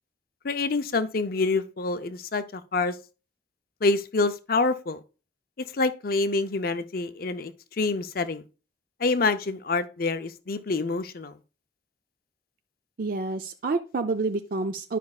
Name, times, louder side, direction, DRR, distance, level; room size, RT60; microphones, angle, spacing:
voice 1, 0.4-2.9 3.8-5.0 5.8-8.4 9.0-11.3, left 3 dB, 50° left, 0.6 m, -26 dB
voice 2, 13.0-15.0, right 3 dB, 50° right, 0.5 m, -28 dB
11.5 x 5.3 x 2.3 m
head